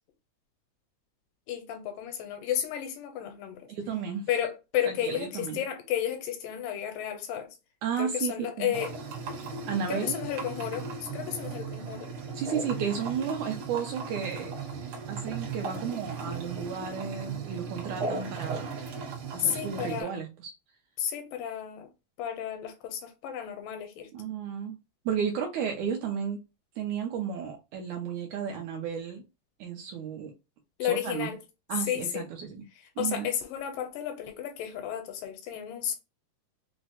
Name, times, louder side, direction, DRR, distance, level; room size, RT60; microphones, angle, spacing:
voice 1, 1.5-3.7 4.3-7.6 8.0-8.9 9.9-12.1 19.4-20.1 21.0-21.9 22.2-24.1 30.8-31.4 31.9-32.3 33.0-36.0, left 10 dB, 85° left, 2.3 m, -32 dB
voice 2, 3.7-4.3 4.8-5.6 7.8-8.7 9.7-10.2 12.3-14.5 15.1-18.7 19.3-20.5 24.1-24.8 25.1-26.4 26.8-29.2 29.6-30.3 30.8-31.3 31.7-32.6 33.0-33.3, right 7 dB, 80° right, 1.8 m, -33 dB
sound 1, 8.7-20.0, right 4 dB, 60° right, 1.5 m, -37 dB
5.3 x 2.0 x 2.8 m
omnidirectional pair, 3.9 m